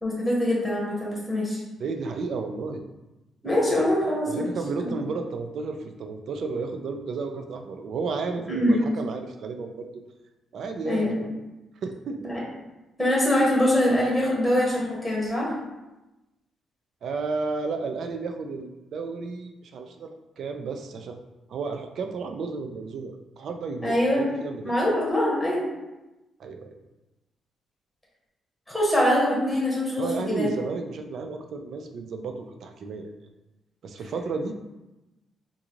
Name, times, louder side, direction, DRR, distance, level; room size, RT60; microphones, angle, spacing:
voice 1, 0.0-1.6 3.4-4.3 4.8-4.9 8.5-8.8 10.8-11.3 12.2-12.4 13.0-15.5 23.8-24.3 24.6-25.7 28.7-30.5, left 1 dB, ahead, -5 dB, 0.9 m, -23 dB
voice 2, 1.8-2.8 4.3-9.9 10.5-11.3 11.8-12.3 17.0-21.2 21.5-24.8 26.4-26.8 30.0-33.1 33.8-34.5, right 4 dB, 60° right, 6 dB, 0.4 m, -32 dB
3.7 x 2.5 x 3.0 m, 1.0 s
cardioid pair, 125°, 0 cm